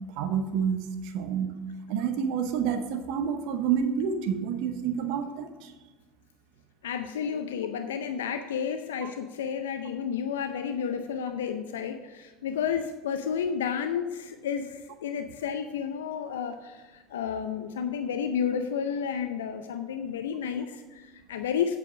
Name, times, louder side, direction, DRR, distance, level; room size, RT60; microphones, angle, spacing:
voice 1, 0.2-1.6 1.9-5.7 9.0-9.1, right 7 dB, 60° right, 8 dB, 0.9 m, -29 dB
voice 2, 6.8-21.8, left 7 dB, 80° left, 8 dB, 0.6 m, -31 dB
8.3 x 7.6 x 5.0 m, 1.4 s
hypercardioid pair, 75°, 0 cm